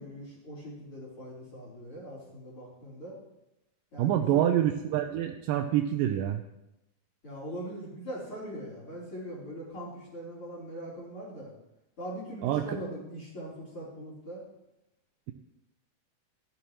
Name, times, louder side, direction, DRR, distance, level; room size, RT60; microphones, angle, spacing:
voice 1, 0.0-3.1 3.9-4.4 7.2-11.5 12.0-14.4, right 1 dB, 35° left, -6 dB, 4.3 m, -41 dB
voice 2, 4.0-6.4 12.4-12.8, right 11 dB, 80° right, 5 dB, 2.1 m, -26 dB
12.0 x 12.0 x 3.0 m, 0.90 s
omnidirectional pair, 4.2 m